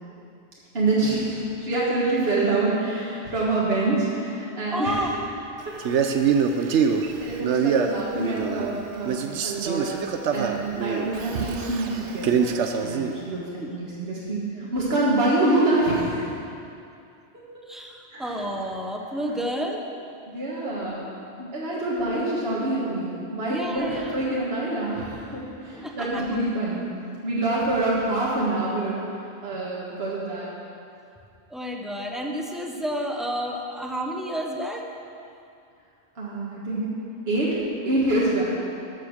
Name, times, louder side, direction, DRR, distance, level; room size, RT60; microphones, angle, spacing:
voice 1, 0.7-5.0 6.6-9.9 10.3-12.5 12.8-13.4 13.7-16.3 18.1-18.3 20.3-21.0 21.4-25.4 25.8-26.9 27.2-29.0 29.4-30.5 36.2-36.9 37.3-37.5 37.8-38.5, right 2 dB, 60° right, -6 dB, 1.9 m, -26 dB
voice 2, 4.7-5.1 13.6-13.8 17.7-19.8 20.6-20.8 23.5-24.2 25.7-26.2 29.5-29.6 31.5-34.9, equal, ahead, 1 dB, 0.8 m, -30 dB
Male speech man speaking, 5.8-8.8 9.0-13.2, right 6 dB, 90° right, 1.0 m, -25 dB
13.0 x 6.5 x 6.5 m, 2.6 s
omnidirectional pair, 1.2 m